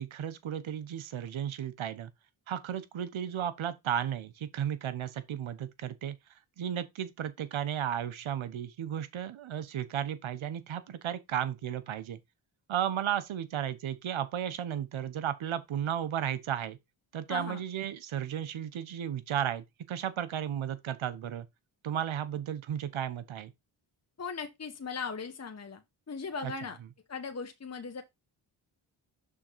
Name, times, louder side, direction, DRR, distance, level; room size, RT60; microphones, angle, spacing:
voice 1, 0.0-2.1 2.5-6.2 6.6-12.2 12.7-16.8 17.1-21.5 21.8-23.5 26.4-26.5, right 9 dB, 70° right, 1.1 m, -34 dB
voice 2, 17.3-17.6 24.2-25.8 26.1-26.8 27.1-28.0, left 5 dB, 30° left, 1.1 m, -38 dB
6.2 x 3.8 x 4.6 m
supercardioid pair, 45°, 49 cm